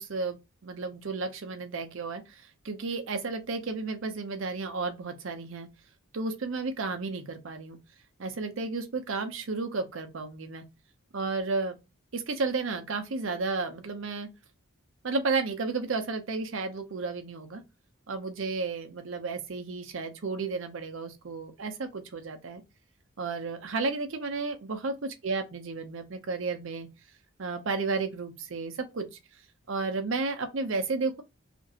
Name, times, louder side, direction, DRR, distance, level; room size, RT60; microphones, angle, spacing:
voice 1, 0.0-5.7 6.1-7.8 8.2-10.6 11.1-11.8 12.1-14.3 15.0-17.6 18.1-22.6 23.2-26.9 27.4-29.1 29.7-31.2, right 4 dB, 60° right, 0.6 m, -32 dB
2.9 x 2.5 x 2.7 m
head